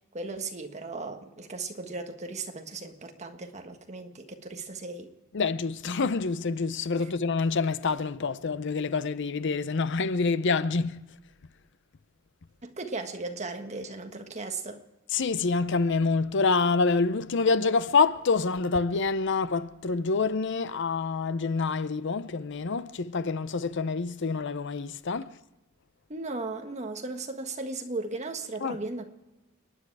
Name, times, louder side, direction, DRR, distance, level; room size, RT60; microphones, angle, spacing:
voice 1, 0.1-5.1 7.0-7.1 12.6-14.8 26.1-29.0, right 3 dB, 35° right, 1.5 m, -36 dB
voice 2, 5.3-11.0 15.1-25.3 28.6-28.8, left 4 dB, 60° left, 0.6 m, -27 dB
30.0 x 10.0 x 4.8 m
head